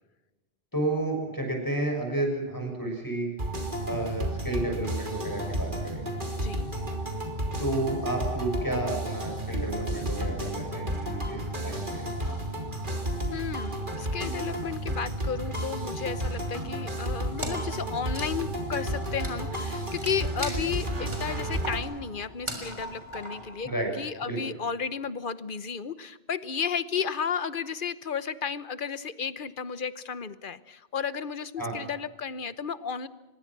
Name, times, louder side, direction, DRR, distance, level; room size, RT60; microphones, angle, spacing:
voice 1, 0.7-3.3 3.8-6.0 7.6-12.0 23.6-23.9 24.2-24.4 31.6-31.7, right 2 dB, 20° left, 2 dB, 6.4 m, -31 dB
sound 1, 3.4-21.8, right 1 dB, 50° right, 3.3 m, -32 dB
voice 2, 6.3-6.7 13.3-33.1, left 6 dB, 55° left, 15 dB, 1.2 m, -33 dB
Wood, 17.4-24.1, right 1 dB, 25° right, 3.5 m, -40 dB
25.0 x 21.5 x 6.1 m, 1.1 s
omnidirectional pair, 1.1 m